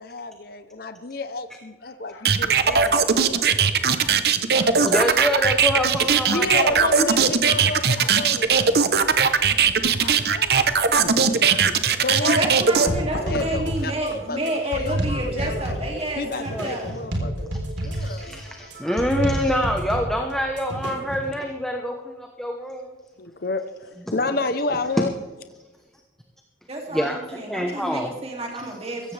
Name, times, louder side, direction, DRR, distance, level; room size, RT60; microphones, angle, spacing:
voice 1, 0.0-3.4 6.3-8.7 10.3-10.5 12.0-15.8 16.2-18.4 23.2-25.1, left 3 dB, 55° left, 10 dB, 0.8 m, -30 dB
sound 1, 2.2-12.9, right 6 dB, 60° right, 0.9 m, -19 dB
voice 2, 4.0-4.9 5.7-5.8 6.2-6.4 7.5-7.7 7.9-8.1 8.5-8.7 9.1-9.3 10.0-10.2 10.5-11.7 12.0-12.2 12.8-13.7, left 3 dB, 80° left, 4 dB, 1.2 m, -38 dB
voice 3, 4.8-6.7 11.2-11.3 16.5-16.7 17.9-22.9 26.9-28.1, equal, 5° left, 2 dB, 1.0 m, -26 dB
voice 4, 12.2-16.9 26.7-29.1, right 1 dB, 35° right, 0 dB, 2.7 m, -30 dB
sound 2, 12.9-21.3, right 1 dB, 85° right, 4.0 m, -30 dB
16.5 x 15.0 x 3.4 m, 1.3 s
head